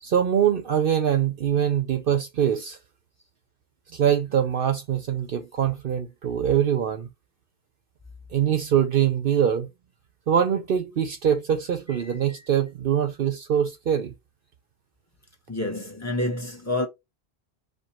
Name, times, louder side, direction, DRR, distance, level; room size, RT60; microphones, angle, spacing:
voice 1, 0.0-2.8 3.9-7.1 8.3-9.7 10.3-14.1, right 9 dB, 60° right, 0.8 m, -23 dB
voice 2, 15.5-16.9, left 1 dB, 15° left, 1.2 m, -28 dB
4.9 x 2.3 x 4.3 m
omnidirectional pair, 1.1 m